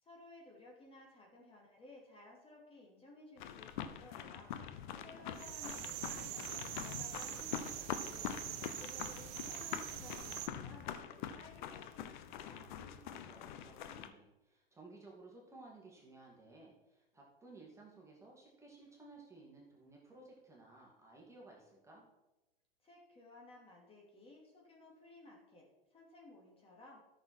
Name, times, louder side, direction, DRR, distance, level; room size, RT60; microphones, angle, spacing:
voice 1, 0.0-4.5 5.0-8.3 8.6-12.7 22.8-25.7 25.9-27.0, left 2 dB, 20° left, -1 dB, 2.5 m, -57 dB
sound 1, 3.4-14.1, left 9 dB, 55° left, 0.9 m, -45 dB
voice 2, 4.8-5.4 12.5-22.1, right 2 dB, 10° right, -3 dB, 2.5 m, -57 dB
sound 2, 5.3-10.5, right 12 dB, 40° right, 0.9 m, -44 dB
13.0 x 6.6 x 4.4 m, 1.0 s
figure-of-eight pair, 100°, 30 cm